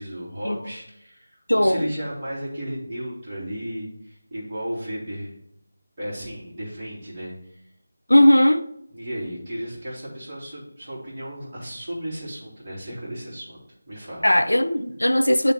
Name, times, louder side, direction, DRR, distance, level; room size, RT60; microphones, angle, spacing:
voice 1, 0.0-5.3 6.0-7.6 8.9-13.6 13.9-14.2, equal, 35° right, 2.6 m, -34 dB
voice 2, 1.5-1.9 8.1-8.7 14.2-15.5, left 1 dB, 80° left, 0.5 m, -18 dB
8.9 x 3.4 x 4.5 m
figure-of-eight pair, 160°, 0 cm